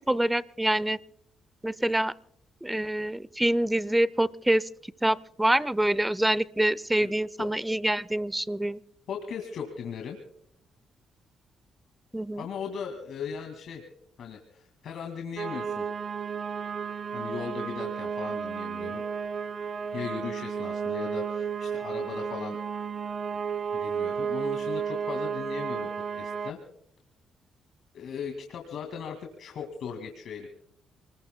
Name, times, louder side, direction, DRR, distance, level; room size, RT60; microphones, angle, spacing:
voice 1, 0.1-1.0 1.6-2.1 2.6-4.7 5.0-8.8 12.1-12.4, right 1 dB, 10° right, 20 dB, 0.6 m, -26 dB
voice 2, 9.1-10.2 12.4-13.9 14.2-15.9 17.1-19.0 19.9-22.6 23.7-25.9 26.2-26.6 27.9-30.5, left 7 dB, 70° left, 2 dB, 2.1 m, -38 dB
sound 1, 15.4-26.5, right 6 dB, 55° right, 0.7 m, -32 dB
29.0 x 20.5 x 2.2 m, 0.74 s
cardioid pair, 90°, 0 cm